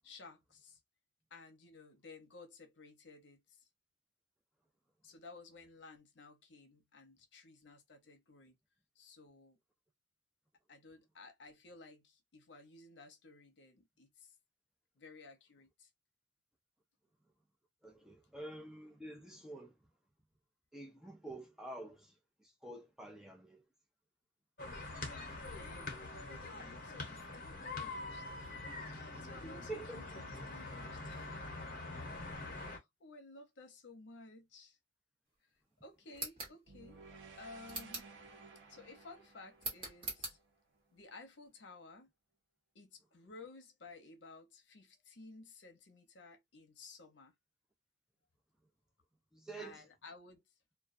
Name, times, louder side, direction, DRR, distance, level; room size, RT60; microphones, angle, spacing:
voice 1, 0.0-0.8 1.3-3.7 5.0-8.6 9.0-9.6 10.7-14.3 15.0-15.9 25.5-28.3 29.2-34.8 35.8-37.0 37.4-38.1 38.7-40.4 40.9-42.1 42.7-47.3 49.6-50.4, left 3 dB, 75° left, 0.7 m, -56 dB
voice 2, 17.8-19.8 20.7-22.1 22.4-23.6 29.7-30.0 49.3-49.7, right 2 dB, 5° right, 0.4 m, -48 dB
sound 1, 24.6-32.8, left 2 dB, 45° left, 0.9 m, -44 dB
sound 2, 36.1-36.6 37.7-38.2 39.6-40.4, right 2 dB, 30° right, 1.1 m, -42 dB
sound 3, 36.7-40.9, right 4 dB, 85° right, 0.7 m, -56 dB
2.2 x 2.2 x 2.5 m
head